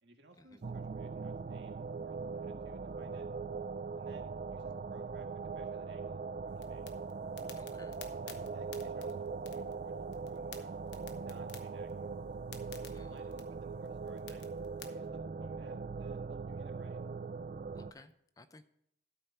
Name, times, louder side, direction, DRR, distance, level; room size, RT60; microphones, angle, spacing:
voice 1, 0.0-3.3 4.0-6.9 8.2-9.9 10.3-12.2 12.8-14.5 14.8-17.0, right 2 dB, 80° right, 2 dB, 1.5 m, -61 dB
sound 1, 0.6-17.9, right 4 dB, 50° right, 0.3 m, -41 dB
sound 2, 6.5-14.9, left 8 dB, 80° left, 1.1 m, -54 dB
voice 2, 7.6-8.0 12.9-13.2 17.7-18.7, left 2 dB, 20° left, 10 dB, 0.4 m, -57 dB
12.5 x 4.5 x 6.8 m, 0.73 s
head